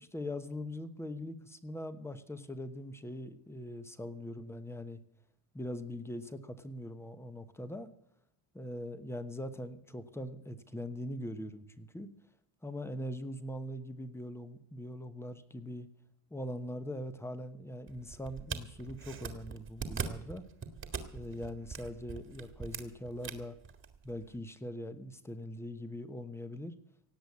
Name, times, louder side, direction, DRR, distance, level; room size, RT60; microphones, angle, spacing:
voice 1, 0.0-5.0 5.5-7.9 8.5-12.1 12.6-15.9 16.3-20.4 21.1-23.6 24.0-26.7, left 1 dB, 5° left, 10 dB, 1.1 m, -41 dB
sound 1, 17.9-24.4, right 6 dB, 25° right, 1.7 m, -42 dB
17.5 x 7.9 x 8.5 m, 0.80 s
cardioid pair, 130°, 46 cm